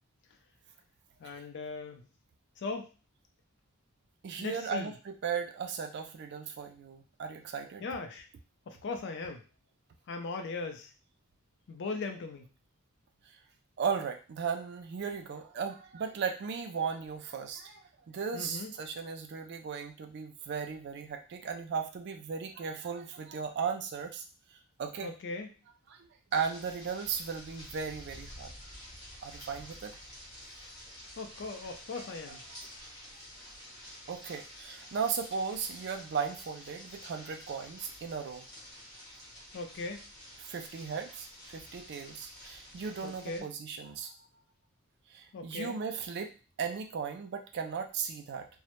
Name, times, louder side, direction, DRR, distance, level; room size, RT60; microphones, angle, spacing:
voice 1, 1.2-2.0 2.6-2.9 4.4-4.9 7.8-8.3 8.7-9.4 10.1-10.9 11.7-12.5 18.3-18.7 25.0-25.5 31.2-32.4 39.5-40.0 43.0-43.5 45.3-45.7, left 3 dB, 55° left, 5 dB, 0.4 m, -38 dB
voice 2, 4.2-7.9 13.8-17.8 18.1-24.2 24.8-25.1 25.9-26.0 26.3-28.5 29.2-30.0 31.9-32.0 32.5-32.6 34.1-38.5 40.4-44.1 45.1-46.3 46.6-48.5, right 6 dB, 50° right, 6 dB, 0.3 m, -36 dB
sound 1, 26.3-43.4, equal, 20° left, 0.7 m, -50 dB
2.1 x 2.0 x 2.9 m, 0.34 s
head